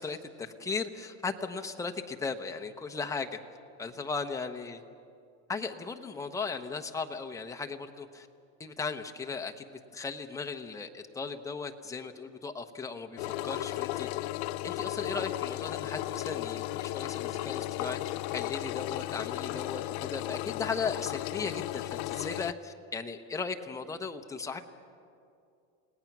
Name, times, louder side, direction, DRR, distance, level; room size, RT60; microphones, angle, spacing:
voice 1, 0.0-3.4 3.8-4.8 5.5-8.3 8.6-14.3 14.6-24.6, left 4 dB, 10° left, 4 dB, 0.8 m, -37 dB
Engine, 13.2-22.5, left 16 dB, 85° left, 0.7 m, -35 dB
29.0 x 18.0 x 6.0 m, 2.5 s
cardioid pair, 155°, 34 cm